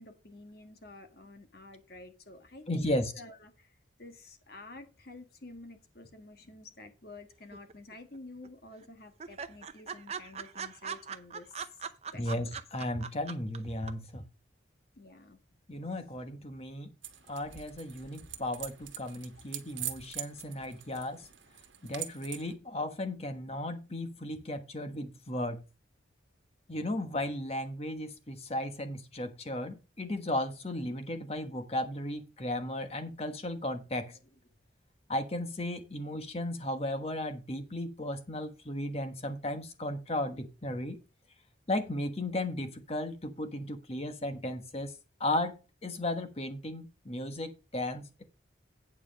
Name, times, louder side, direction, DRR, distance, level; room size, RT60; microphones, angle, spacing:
voice 1, 0.0-11.7 12.1-12.3 15.0-15.4 16.0-16.1, left 2 dB, 55° left, 1.5 m, -50 dB
voice 2, 2.7-3.1 12.1-14.2 15.7-16.9 17.3-21.3 21.8-25.6 26.7-34.2 35.1-41.0 41.7-44.9 45.2-45.5 45.8-48.2, left 1 dB, 30° left, 1.3 m, -35 dB
sound 1, 7.5-8.2 8.4-8.5 8.8-8.9 9.2-13.6 13.9-14.0, right 6 dB, 35° right, 0.6 m, -40 dB
sound 2, 17.0-22.5, right 11 dB, 80° right, 1.4 m, -43 dB
9.3 x 4.8 x 6.3 m
head